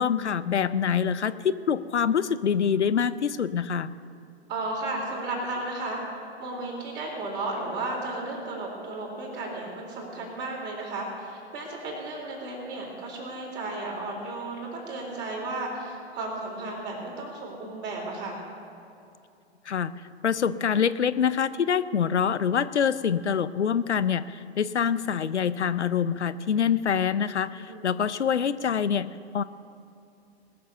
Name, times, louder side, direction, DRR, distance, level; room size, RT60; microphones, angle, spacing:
voice 1, 0.0-3.9 19.7-29.1 29.3-29.4, left 7 dB, 80° left, 15 dB, 0.6 m, -25 dB
voice 2, 4.5-18.4 27.6-27.9, right 2 dB, 30° right, -1 dB, 3.9 m, -34 dB
20.0 x 6.8 x 6.6 m, 2.6 s
figure-of-eight pair, 110°, 34 cm